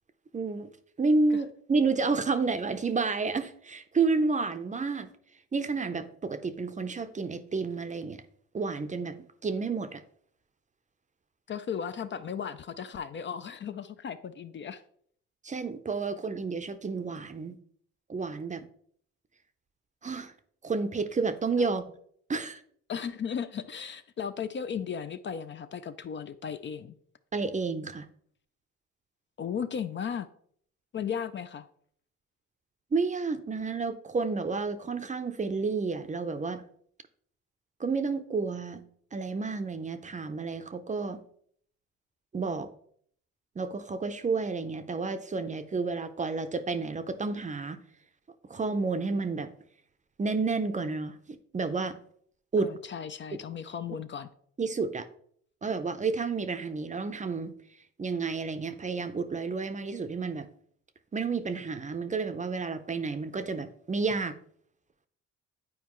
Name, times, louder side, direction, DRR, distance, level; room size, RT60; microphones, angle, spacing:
voice 1, 0.3-0.7 1.0-5.1 5.5-8.2 8.5-9.2 9.4-10.0 15.4-17.6 18.1-18.7 20.0-20.3 20.6-21.9 22.3-22.6 27.3-28.1 32.9-36.6 37.8-38.8 39.1-41.2 42.3-42.7 43.6-47.8 48.5-49.5 50.2-52.0 52.5-52.7 54.6-55.1 55.6-57.5 58.0-60.5 61.1-64.4, right 4 dB, 25° right, 10 dB, 0.6 m, -30 dB
voice 2, 11.5-14.8 21.6-21.7 22.9-27.0 29.4-30.3 30.9-31.7 52.6-54.3, left 7 dB, 40° left, 11 dB, 0.4 m, -36 dB
9.5 x 4.5 x 3.0 m, 0.63 s
cardioid pair, 90°, 30 cm